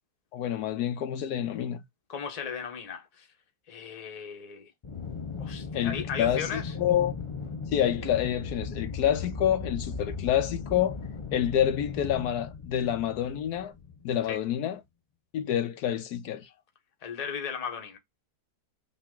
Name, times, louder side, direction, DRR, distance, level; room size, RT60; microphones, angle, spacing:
voice 1, 0.3-1.8 5.7-7.1 7.7-11.0 11.3-13.7 14.0-14.8 15.3-16.5, left 10 dB, 80° left, 1.2 m, -28 dB
voice 2, 2.1-3.3 3.7-4.7 5.4-6.8 14.3-14.4 17.0-18.0, left 7 dB, 30° left, 0.8 m, -36 dB
Aircraft, 4.8-14.3, left 5 dB, 55° left, 0.3 m, -37 dB
5.6 x 2.6 x 3.6 m
omnidirectional pair, 1.7 m